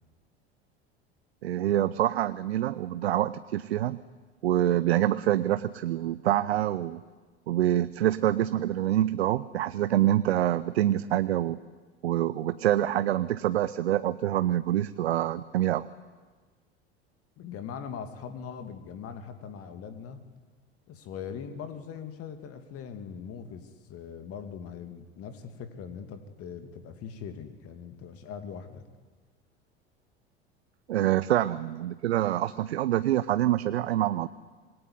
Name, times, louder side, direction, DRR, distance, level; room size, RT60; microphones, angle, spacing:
voice 1, 1.4-4.0 4.4-7.0 7.5-11.6 12.0-15.9 30.9-34.3, right 12 dB, 75° right, 14 dB, 0.7 m, -26 dB
voice 2, 17.4-20.2 20.9-28.8, left 7 dB, 45° left, 8 dB, 2.6 m, -41 dB
26.5 x 19.5 x 9.7 m, 1.4 s
figure-of-eight pair, 75°, 32 cm